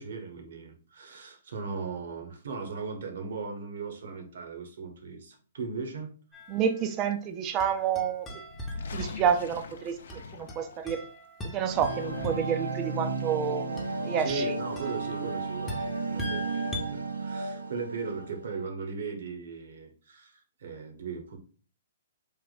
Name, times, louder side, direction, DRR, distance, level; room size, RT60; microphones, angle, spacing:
voice 1, 0.0-6.1 14.2-21.4, right 5 dB, 65° right, 3 dB, 1.1 m, -38 dB
sound 1, 6.3-7.1 7.6-9.6 10.1-12.7 13.8-16.9, left 1 dB, 15° left, 1.0 m, -42 dB
voice 2, 6.5-8.3 8.9-10.0 10.3-11.0 11.5-13.6 14.0-14.6, right 8 dB, 30° right, 8 dB, 0.6 m, -29 dB
sound 2, 8.4-11.0 11.5-12.7, left 4 dB, 65° left, 0.6 m, -42 dB
sound 3, 11.7-18.6, right 3 dB, 85° right, 0.6 m, -33 dB
3.4 x 2.5 x 4.0 m, 0.40 s
figure-of-eight pair, 125°, 0 cm